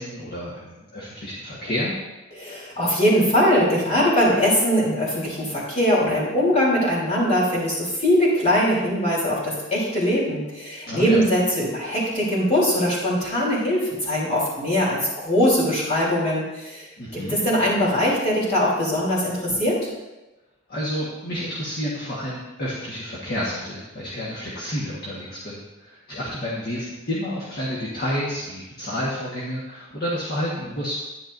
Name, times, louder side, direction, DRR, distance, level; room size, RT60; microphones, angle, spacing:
voice 1, 0.0-1.9 10.9-11.2 17.0-17.4 20.7-31.0, equal, 50° left, -6 dB, 1.5 m, -30 dB
voice 2, 2.3-16.9 17.1-19.8, equal, 30° left, -5 dB, 3.3 m, -21 dB
10.5 x 10.0 x 2.6 m, 1.0 s
head